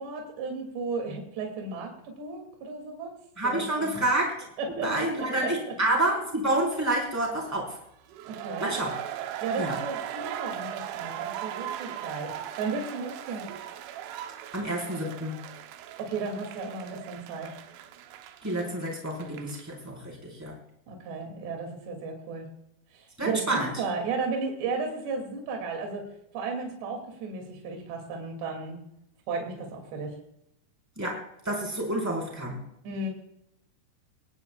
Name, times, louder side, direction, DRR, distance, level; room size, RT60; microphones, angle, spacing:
voice 1, 0.0-3.1 3.4-4.0 4.6-4.9 5.4-5.7 8.3-8.7 9.4-13.5 16.0-17.5 20.9-22.5 22.9-28.8 29.3-30.2 32.8-33.1, right 4 dB, 65° right, 2 dB, 4.6 m, -34 dB
voice 2, 3.4-4.3 4.8-7.8 8.6-8.9 9.6-9.8 14.5-15.4 18.4-20.6 23.2-23.7 31.0-32.6, right 1 dB, 5° right, -2 dB, 3.9 m, -28 dB
sound 1, 8.1-19.8, right 11 dB, 85° right, 3.5 m, -38 dB
21.5 x 17.5 x 2.4 m, 0.79 s
omnidirectional pair, 5.5 m